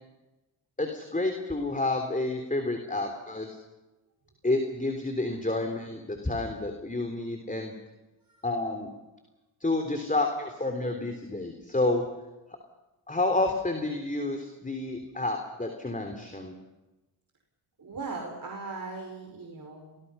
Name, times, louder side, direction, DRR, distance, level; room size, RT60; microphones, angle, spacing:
voice 1, 0.8-3.6 4.4-7.7 8.4-8.9 9.6-12.0 13.1-16.5, left 2 dB, 15° left, 4 dB, 3.6 m, -29 dB
voice 2, 17.8-20.0, right 3 dB, 45° right, 1 dB, 5.3 m, -39 dB
27.0 x 20.0 x 5.7 m, 1.0 s
supercardioid pair, 50°, 47 cm